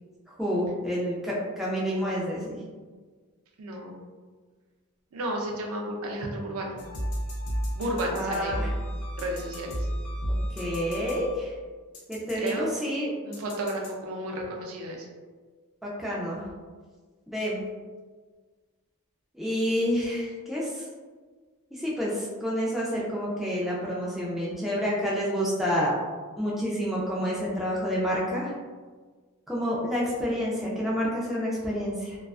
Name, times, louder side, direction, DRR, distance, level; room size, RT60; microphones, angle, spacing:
voice 1, 0.4-2.6 8.1-8.7 10.5-11.5 12.1-13.1 15.8-16.5 17.3-17.6 19.3-20.9 21.7-25.9 26.4-28.5 29.5-32.2, equal, ahead, -6 dB, 0.3 m, -28 dB
voice 2, 3.6-4.0 5.1-6.8 7.7-8.7 9.2-9.9 12.3-12.7 13.2-15.1, right 1 dB, 70° right, 0 dB, 0.4 m, -32 dB
sound 1, 6.8-11.6 11.9-12.5 13.3-13.9, equal, 80° left, 0.6 m, -33 dB
2.4 x 2.3 x 2.3 m, 1.5 s
head